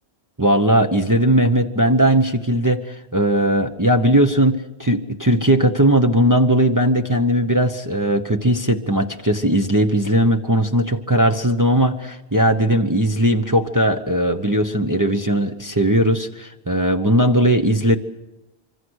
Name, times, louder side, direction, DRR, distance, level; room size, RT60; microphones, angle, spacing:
voice 1, 0.4-18.0, right 1 dB, 20° right, 4 dB, 1.0 m, -18 dB
25.5 x 25.0 x 6.4 m, 0.96 s
omnidirectional pair, 1.1 m